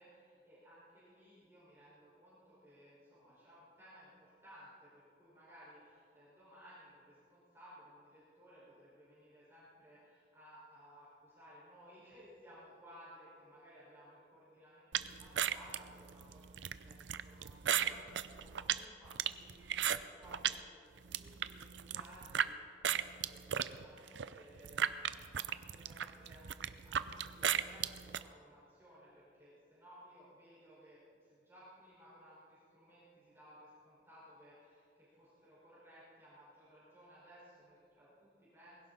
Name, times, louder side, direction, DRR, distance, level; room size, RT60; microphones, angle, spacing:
voice 1, 0.0-38.9, equal, 15° right, -9 dB, 5.1 m, -59 dB
sound 1, 14.9-20.6 21.0-22.5 22.8-28.2, right 9 dB, 85° right, 0.6 m, -36 dB
20.5 x 17.0 x 4.1 m, 2.2 s
head